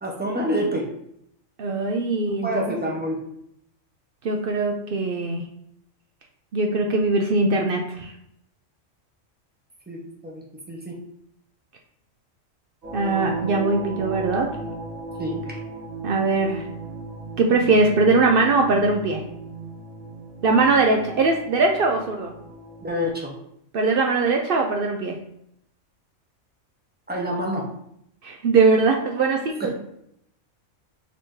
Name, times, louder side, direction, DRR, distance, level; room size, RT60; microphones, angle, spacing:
voice 1, 0.0-0.9 2.3-3.2 9.9-10.9 15.2-15.4 22.8-23.3 27.1-27.7 29.6-29.7, equal, 10° right, -1 dB, 0.6 m, -27 dB
voice 2, 1.6-2.6 4.2-5.4 6.5-8.1 12.9-14.5 16.0-16.6 17.4-19.2 20.4-22.3 23.7-25.2 28.2-29.7, right 3 dB, 65° right, 2 dB, 0.5 m, -21 dB
sound 1, 12.8-23.1, right 3 dB, 50° right, 2.0 m, -36 dB
5.1 x 2.7 x 3.7 m, 0.75 s
omnidirectional pair, 1.4 m